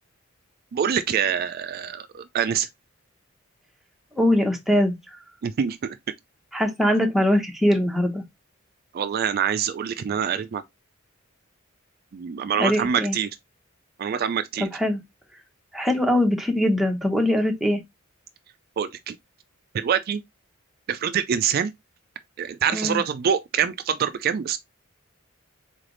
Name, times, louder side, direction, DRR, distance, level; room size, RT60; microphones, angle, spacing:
voice 1, 0.7-2.7 5.4-6.0 8.9-10.6 12.1-13.3 14.0-14.7 18.8-19.2 19.7-20.2 20.9-21.7 22.4-24.6, right 8 dB, 45° right, 0.3 m, -25 dB
voice 2, 4.2-5.0 6.5-8.2 12.6-13.1 14.6-15.0 15.7-17.8 22.7-23.0, left 1 dB, ahead, 0.8 m, -22 dB
3.9 x 3.3 x 3.8 m
head